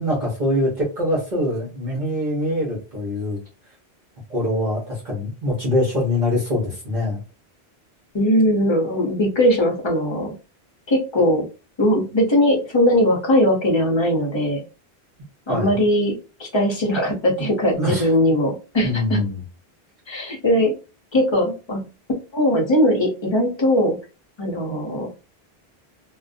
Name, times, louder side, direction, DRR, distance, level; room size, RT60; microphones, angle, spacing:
voice 1, 0.0-3.4 4.3-7.2 15.5-15.8 17.7-18.1 18.8-19.4, left 1 dB, 50° right, -5 dB, 1.0 m, -23 dB
voice 2, 8.1-10.3 10.9-11.5 11.8-14.6 15.5-19.2 20.1-20.7 21.1-21.9 22.3-24.0 24.4-25.1, equal, 30° left, 1 dB, 0.6 m, -20 dB
2.4 x 2.1 x 2.4 m, 0.31 s
omnidirectional pair, 1.1 m